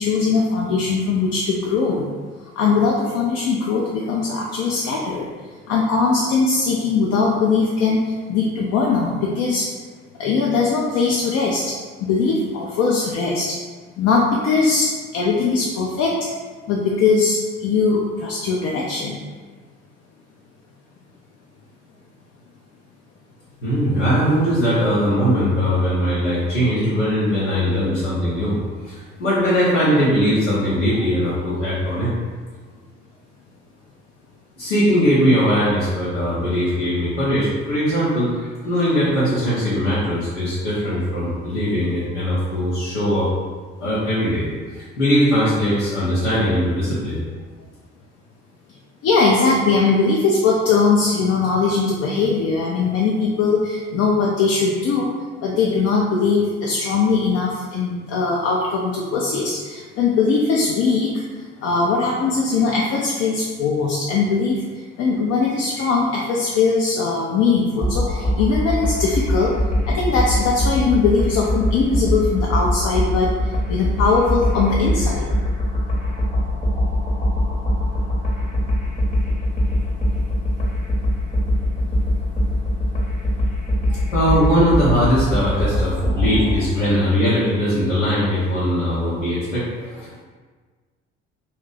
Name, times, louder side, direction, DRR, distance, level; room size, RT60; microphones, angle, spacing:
voice 1, 0.0-2.0 2.6-5.2 5.7-8.0 8.3-9.6 10.2-11.6 12.1-13.5 14.0-16.1 16.7-19.2 49.0-55.1 55.4-61.1 61.6-64.6 65.0-69.5 69.9-73.3 73.7-75.3, left 4 dB, 45° left, -3 dB, 0.5 m, -20 dB
voice 2, 23.6-28.6 28.8-32.1 34.6-43.3 43.8-47.2 83.9-90.2, equal, 85° left, -10 dB, 0.7 m, -20 dB
sound 1, 67.8-86.6, left 1 dB, 25° left, 0.9 m, -22 dB
2.6 x 2.2 x 3.8 m, 1.5 s
figure-of-eight pair, 50°, 36 cm